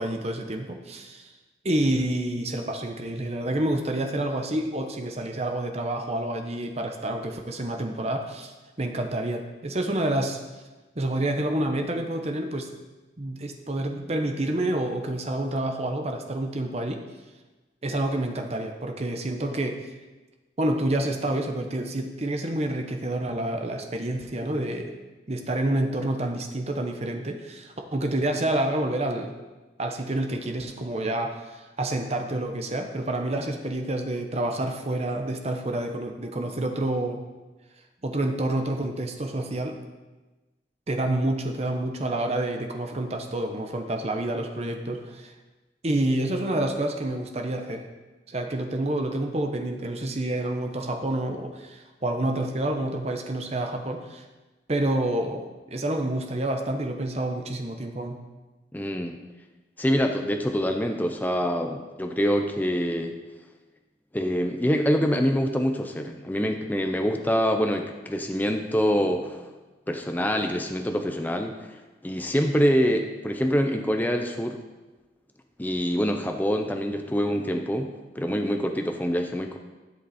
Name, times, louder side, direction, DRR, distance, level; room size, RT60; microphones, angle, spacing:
voice 1, 0.0-1.3 1.6-10.4 11.0-12.7 13.2-17.0 17.8-19.8 20.6-24.9 25.3-29.3 29.8-37.2 38.0-39.8 40.9-45.3 45.8-47.9 48.3-54.2 54.7-55.4 55.7-58.2, right 1 dB, 35° right, 4 dB, 0.9 m, -28 dB
voice 2, 58.7-59.2 59.8-63.2 64.1-69.5 69.9-74.6 75.6-79.6, equal, 10° left, 4 dB, 0.6 m, -25 dB
13.5 x 8.1 x 4.2 m, 1.2 s
head